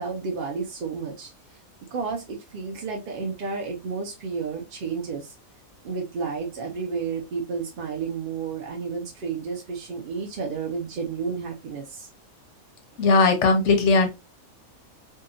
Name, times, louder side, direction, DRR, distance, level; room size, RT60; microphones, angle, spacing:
voice 1, 0.0-1.3 1.9-5.3 5.8-12.1, right 5 dB, 65° right, 0.5 m, -31 dB
voice 2, 13.0-14.1, left 3 dB, 65° left, 0.8 m, -18 dB
2.7 x 2.2 x 2.4 m
omnidirectional pair, 1.5 m